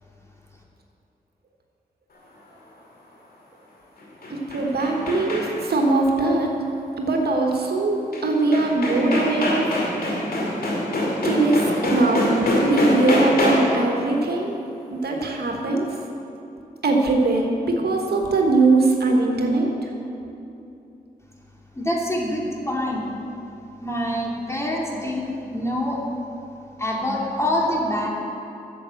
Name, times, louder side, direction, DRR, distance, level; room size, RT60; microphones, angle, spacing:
sound 1, 4.0-5.8 8.1-8.2 8.5-13.9, left 1 dB, 65° left, 2.5 m, -24 dB
voice 1, 4.3-6.5 7.0-9.7 11.2-14.5 14.9-15.9 16.8-19.9, right 2 dB, 70° right, 1 dB, 1.4 m, -21 dB
voice 2, 21.7-23.0 23.8-26.0 26.8-28.1, left 1 dB, 15° left, -2 dB, 2.7 m, -25 dB
9.4 x 7.5 x 7.6 m, 2.8 s
supercardioid pair, 40°, 17 cm